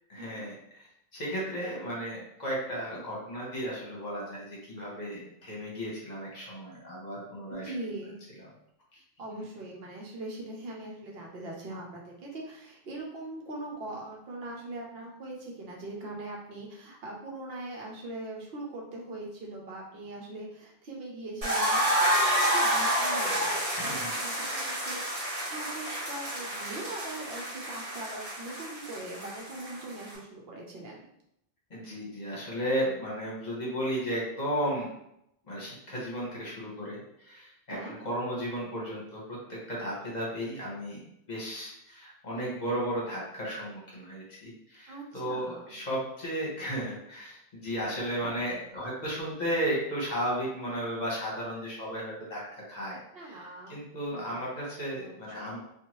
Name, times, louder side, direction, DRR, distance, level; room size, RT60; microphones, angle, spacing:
voice 1, 0.1-0.8 1.1-7.6 9.3-9.4 23.7-24.1 31.7-34.9 35.5-39.4 39.7-41.0 41.3-52.4 52.7-53.4 53.7-55.6, equal, 45° left, -5 dB, 1.0 m, -34 dB
voice 2, 7.5-8.3 9.2-23.5 23.8-31.1 37.7-37.9 44.9-45.8 53.1-53.8 54.1-54.4 55.0-55.6, right 2 dB, 70° right, -2 dB, 0.9 m, -41 dB
sound 1, 21.4-30.1, equal, 35° right, 1.0 m, -29 dB
2.7 x 2.3 x 2.9 m, 0.78 s
omnidirectional pair, 1.1 m